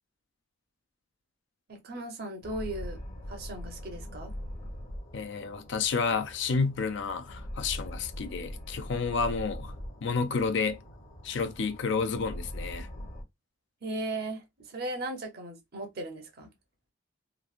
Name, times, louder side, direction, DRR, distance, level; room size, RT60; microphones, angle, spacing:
voice 1, 1.7-3.0 3.3-4.3 13.8-16.5, right 2 dB, 50° right, 0.8 m, -37 dB
sound 1, 2.4-13.2, equal, 40° left, 0.8 m, -42 dB
voice 2, 5.1-9.7 10.0-10.8 11.2-12.9, left 5 dB, 65° left, 0.4 m, -30 dB
3.1 x 2.4 x 2.4 m
head